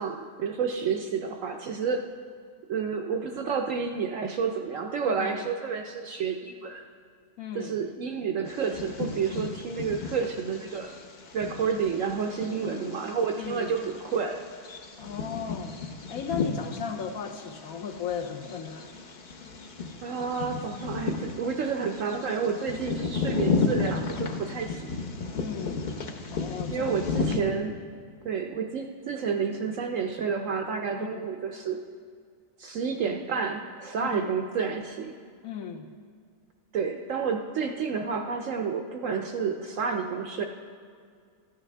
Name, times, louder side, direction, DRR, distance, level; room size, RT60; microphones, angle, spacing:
voice 1, 0.0-2.0 2.7-6.8 7.5-10.9 11.3-14.4 20.0-25.1 26.7-27.8 28.2-31.8 32.6-35.1 36.7-40.4, right 6 dB, 70° right, 4 dB, 0.8 m, -30 dB
voice 2, 5.1-5.4 7.4-7.8 12.6-13.0 13.4-13.7 15.0-15.7 16.1-19.0 25.3-25.8 26.3-27.1 31.0-31.3 34.0-34.4 35.4-35.9, left 7 dB, 70° left, 5 dB, 0.9 m, -36 dB
Bird vocalization bird call bird song, 8.5-27.4, left 4 dB, 50° left, 0.5 m, -34 dB
14.0 x 8.9 x 3.3 m, 2.1 s
omnidirectional pair, 1.8 m